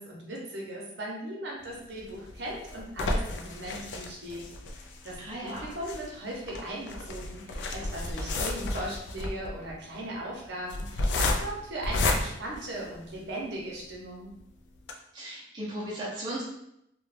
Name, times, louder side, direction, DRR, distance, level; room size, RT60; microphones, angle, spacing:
voice 1, 0.0-4.4 4.8-14.3, right 1 dB, 60° right, -3 dB, 0.7 m, -38 dB
sound 1, 2.0-13.4 13.9-14.0 14.3-14.4 14.8-14.9, left 2 dB, 65° left, 0.3 m, -32 dB
voice 2, 5.2-5.7 15.1-16.4, right 1 dB, 25° right, -7 dB, 0.5 m, -36 dB
2.2 x 2.1 x 3.1 m, 0.79 s
head